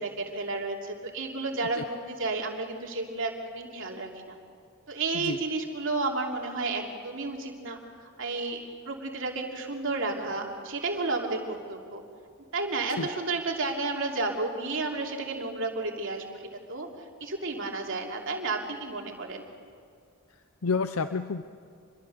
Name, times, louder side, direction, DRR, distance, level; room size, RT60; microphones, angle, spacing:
voice 1, 0.0-4.4 4.9-12.0 12.5-19.4, right 3 dB, 60° right, 1 dB, 2.9 m, -32 dB
voice 2, 20.6-21.4, left 4 dB, 75° left, 10 dB, 0.6 m, -29 dB
26.5 x 22.5 x 6.9 m, 2.3 s
head